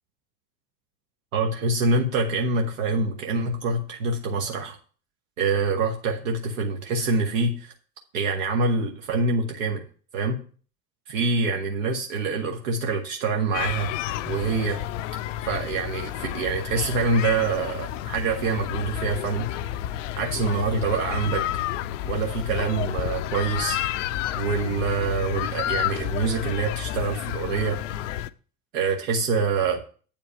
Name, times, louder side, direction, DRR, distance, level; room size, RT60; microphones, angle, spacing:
voice 1, 1.3-4.8 5.4-7.7 8.1-9.8 10.1-10.4 11.1-13.9 14.2-14.8 15.5-19.5 20.2-21.5 22.0-23.8 24.4-27.8 28.7-29.8, right 4 dB, 55° right, 2 dB, 1.4 m, -25 dB
sound 1, 13.5-28.3, left 12 dB, 55° left, 0.6 m, -30 dB
8.8 x 5.1 x 6.7 m, 0.40 s
figure-of-eight pair, 75°, 46 cm